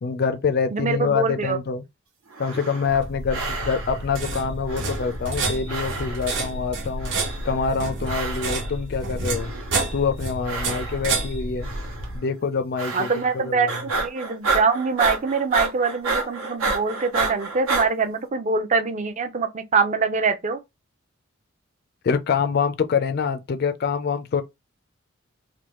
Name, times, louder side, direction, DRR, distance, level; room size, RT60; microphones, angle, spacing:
voice 1, 0.0-1.8 2.4-7.1 7.4-9.5 9.9-11.7 12.1-13.8 22.0-24.4, left 5 dB, 50° left, 0.4 m, -25 dB
voice 2, 0.7-1.6 12.9-20.6, right 4 dB, 35° right, 0.5 m, -24 dB
sound 1, 2.3-3.0 3.3-4.1 4.7-5.4 5.7-6.4 7.0-7.6 8.0-8.7 9.3-9.9 10.4-11.2 11.6-12.1 12.8-13.4 13.7-17.9, right 3 dB, 85° right, 1.0 m, -29 dB
sound 2, 2.9-12.2, right 2 dB, 60° right, 0.9 m, -29 dB
3.2 x 2.2 x 3.0 m
head